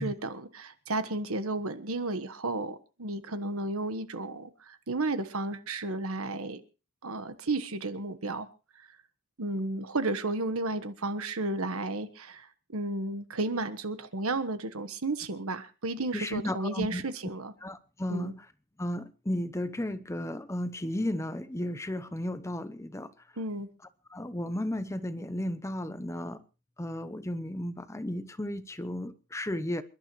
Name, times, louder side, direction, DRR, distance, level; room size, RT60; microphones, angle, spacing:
voice 1, 0.0-6.6 7.0-8.5 9.4-12.5 12.7-17.5 18.1-18.3 23.4-23.7, right 2 dB, 80° right, 1.4 m, -33 dB
voice 2, 16.1-17.0 17.6-18.5 18.8-23.1 24.1-26.4 26.8-29.8, left 1 dB, 15° left, 0.7 m, -34 dB
28.0 x 11.5 x 3.2 m
head